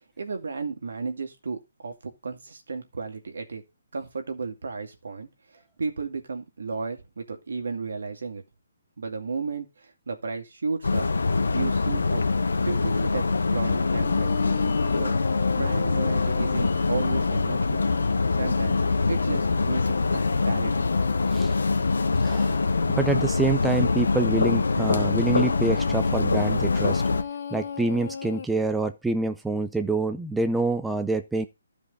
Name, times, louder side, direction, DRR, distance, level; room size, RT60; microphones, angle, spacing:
voice 1, 0.2-3.6 3.9-5.3 5.5-8.4 9.0-11.1 11.5-12.2 12.6-13.2 13.5-14.3 14.9-15.1 15.6-17.9 18.4-20.7, right 4 dB, 75° right, 5 dB, 2.3 m, -33 dB
sound 1, 10.8-27.2, left 3 dB, 90° left, 1.2 m, -24 dB
sound 2, 13.7-28.5, left 6 dB, 50° left, 0.9 m, -36 dB
voice 2, 22.2-22.7 22.9-27.0 27.5-31.5, right 3 dB, 5° right, 7 dB, 0.5 m, -26 dB
13.0 x 5.2 x 4.0 m, 0.25 s
hypercardioid pair, 165°, 0 cm